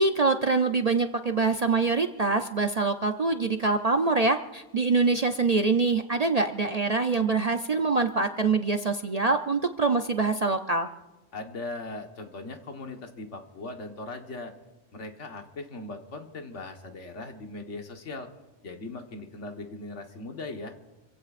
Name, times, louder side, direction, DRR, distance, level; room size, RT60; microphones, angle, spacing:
voice 1, 0.0-10.9, right 3 dB, 45° right, 6 dB, 0.5 m, -24 dB
voice 2, 11.3-14.5 14.9-18.3 18.6-20.7, left 2 dB, 70° left, 4 dB, 1.7 m, -39 dB
27.5 x 16.0 x 2.5 m, 1.1 s
omnidirectional pair, 1.3 m